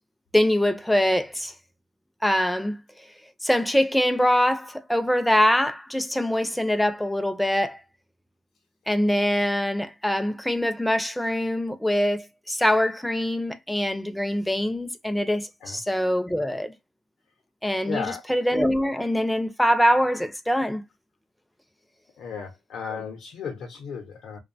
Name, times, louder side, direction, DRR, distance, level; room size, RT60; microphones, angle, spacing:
voice 1, 0.3-1.5 2.2-2.8 3.4-7.8 8.9-16.7 17.6-20.8 22.9-23.0, equal, 5° left, 0.4 m, -23 dB
voice 2, 17.8-18.2 22.2-24.4, left 6 dB, 70° left, 0.6 m, -34 dB
2.7 x 2.2 x 2.6 m
cardioid pair, 90°, 0 cm